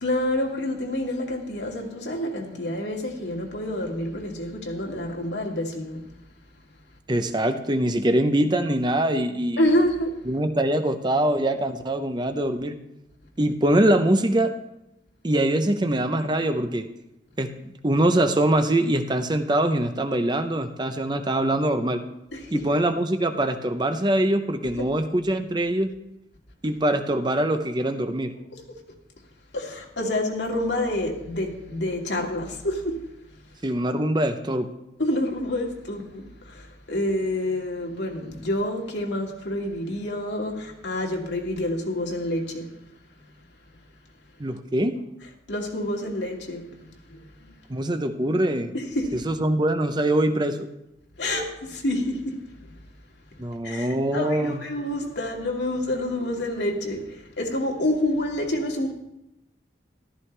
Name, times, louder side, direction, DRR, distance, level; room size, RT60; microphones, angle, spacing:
voice 1, 0.0-6.0 9.6-10.2 22.3-22.6 28.5-28.6 29.5-33.0 35.0-42.7 45.5-46.7 47.1-47.5 48.7-49.2 51.2-52.4 53.6-58.9, left 1 dB, 90° left, 2.2 m, -28 dB
voice 2, 7.1-9.6 10.3-12.7 13.4-14.5 15.2-16.9 17.4-22.0 22.5-25.9 26.6-28.3 33.6-34.7 44.4-45.0 47.7-48.7 49.2-50.7 53.4-54.6, right 1 dB, 25° right, 0.7 m, -23 dB
14.0 x 13.0 x 3.3 m
head